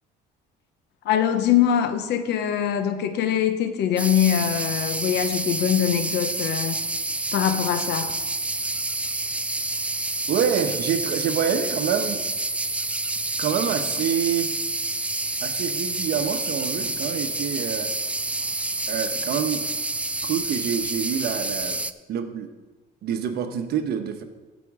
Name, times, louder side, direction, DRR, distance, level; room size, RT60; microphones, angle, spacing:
voice 1, 1.0-6.8 7.3-8.2, left 10 dB, 70° left, 1.0 m, -23 dB
sound 1, 4.0-21.9, right 2 dB, 5° right, 0.3 m, -28 dB
voice 2, 10.3-12.2 13.4-14.5 15.4-17.9 18.9-19.6 20.2-21.8 22.1-22.5 23.0-24.2, right 8 dB, 65° right, 1.2 m, -26 dB
15.5 x 5.3 x 4.9 m
cardioid pair, 110°, 18 cm